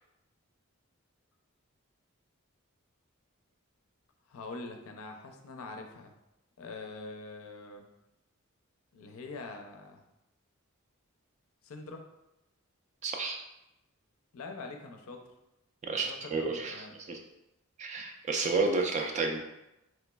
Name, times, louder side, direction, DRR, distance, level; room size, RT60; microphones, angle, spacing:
voice 1, 4.3-6.1 6.6-7.9 8.9-10.0 11.6-12.0 14.3-15.2 15.9-16.9, left 3 dB, 75° left, 4 dB, 0.4 m, -44 dB
voice 2, 13.0-13.4 15.8-17.2 17.8-19.4, right 3 dB, 30° right, 3 dB, 0.3 m, -31 dB
3.3 x 3.0 x 2.2 m, 0.91 s
head